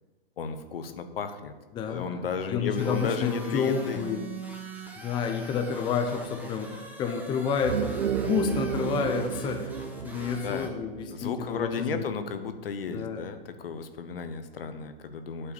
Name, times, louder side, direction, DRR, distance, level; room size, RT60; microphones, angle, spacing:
voice 1, 0.4-1.5 1.9-4.0 10.4-10.7 11.1-15.5, left 5 dB, 65° left, 9 dB, 0.9 m, -33 dB
voice 2, 1.7-2.2 2.5-4.2 5.0-9.7 10.0-12.0 12.9-13.2, left 6 dB, 15° left, 5 dB, 0.6 m, -30 dB
sound 1, 2.8-10.7, right 1 dB, 5° right, 1.1 m, -43 dB
sound 2, 7.5-12.3, right 9 dB, 80° right, 0.5 m, -33 dB
8.5 x 4.6 x 7.1 m, 1.2 s
hypercardioid pair, 120°, 30 cm